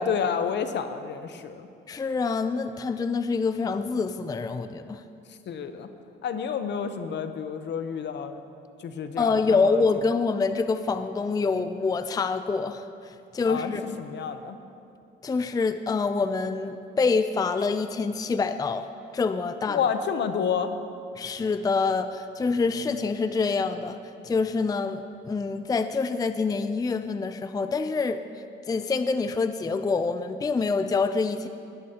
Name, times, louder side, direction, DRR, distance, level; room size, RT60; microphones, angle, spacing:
voice 1, 0.0-1.7 5.5-5.9 6.2-8.4 8.8-9.8 13.5-13.7 14.0-14.6 19.7-20.8, left 7 dB, 65° left, 9 dB, 0.8 m, -29 dB
voice 2, 1.9-5.0 9.2-13.8 15.2-18.9 19.1-19.8 21.2-31.5, left 4 dB, 20° left, 10 dB, 0.4 m, -26 dB
17.5 x 12.5 x 2.9 m, 2.5 s
cardioid pair, 90°, 20 cm